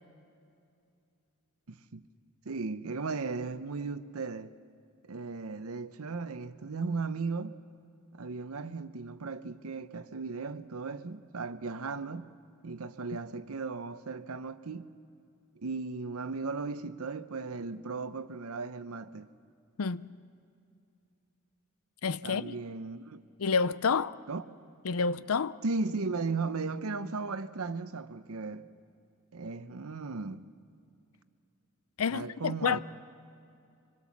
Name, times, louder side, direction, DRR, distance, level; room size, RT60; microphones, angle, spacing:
voice 1, 1.7-2.0 2.4-4.5 5.0-7.6 8.1-12.3 12.6-14.9 15.6-19.3 22.2-23.2 24.3-24.4 25.6-28.7 29.3-30.5 32.1-32.8, right 4 dB, 80° right, 0.8 m, -36 dB
voice 2, 22.0-22.5 23.4-24.1 24.8-25.6 32.0-32.8, left 5 dB, 75° left, 0.6 m, -29 dB
25.0 x 21.0 x 7.3 m
head